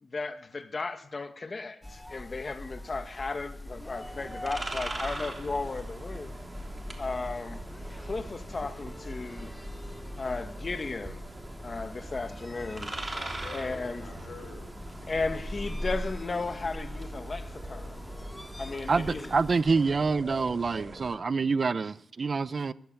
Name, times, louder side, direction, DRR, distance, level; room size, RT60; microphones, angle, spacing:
voice 1, 0.0-6.4 7.0-7.6 8.0-9.5 10.2-11.2 11.6-12.9 13.5-14.0 15.1-18.0 18.6-19.2, left 3 dB, 30° left, 1.6 m, -35 dB
sound 1, 1.8-19.6, left 1 dB, 10° left, 1.2 m, -42 dB
sound 2, 3.7-21.2, right 2 dB, 15° right, 3.3 m, -42 dB
voice 2, 12.9-15.1, left 4 dB, 55° left, 5.9 m, -47 dB
voice 3, 18.9-22.7, right 4 dB, 35° right, 0.7 m, -27 dB
22.5 x 14.0 x 9.0 m
wide cardioid pair, 125°, 0 cm